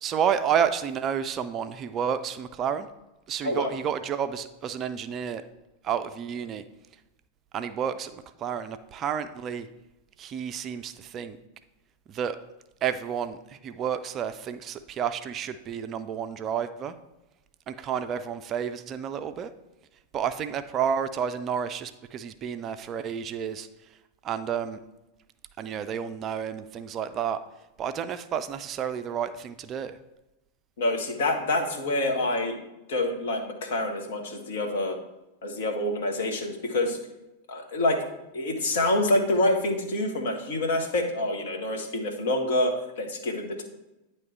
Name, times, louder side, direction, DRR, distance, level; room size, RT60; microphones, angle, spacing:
voice 1, 0.0-2.9 3.3-5.4 5.8-6.6 7.5-9.7 10.2-11.4 12.1-12.4 12.8-16.9 17.7-19.5 20.1-23.7 24.2-24.8 25.6-27.4 27.8-30.0, right 8 dB, 30° right, 10 dB, 0.3 m, -30 dB
voice 2, 30.8-32.6 32.9-35.0 35.4-37.0 37.5-38.0 38.3-43.6, left 1 dB, 60° left, 3 dB, 1.0 m, -27 dB
9.1 x 3.1 x 4.4 m, 0.96 s
figure-of-eight pair, 90°, 0 cm